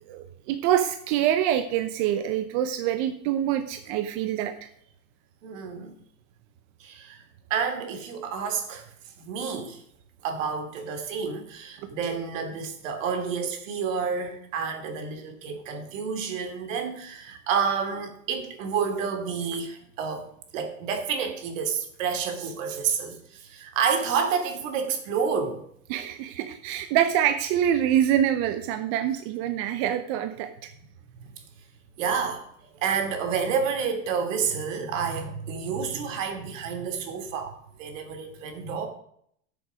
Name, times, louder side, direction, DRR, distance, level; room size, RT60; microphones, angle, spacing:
voice 1, 0.1-4.5 25.9-30.7, right 10 dB, 50° right, 8 dB, 0.9 m, -25 dB
voice 2, 5.4-5.9 6.8-7.2 7.5-8.8 9.2-9.8 10.2-20.2 20.5-25.6 32.0-38.9, right 6 dB, 85° right, 5 dB, 2.7 m, -29 dB
12.5 x 7.1 x 5.1 m, 0.68 s
supercardioid pair, 155°, 38 cm